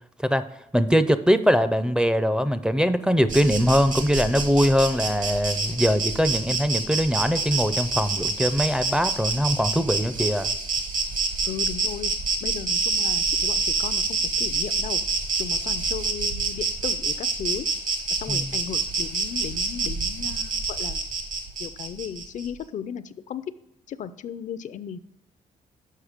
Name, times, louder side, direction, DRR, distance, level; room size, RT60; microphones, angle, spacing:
voice 1, 0.7-10.5 18.3-18.6, equal, 5° right, 11 dB, 0.4 m, -22 dB
Insect, 3.3-22.5, right 4 dB, 65° right, 1.3 m, -27 dB
voice 2, 11.4-12.1 12.4-15.0 15.4-17.7 18.2-21.0 21.6-23.4 23.9-25.0, left 8 dB, 60° left, 14 dB, 0.4 m, -35 dB
6.5 x 5.5 x 4.9 m, 0.84 s
cardioid pair, 85°, 14 cm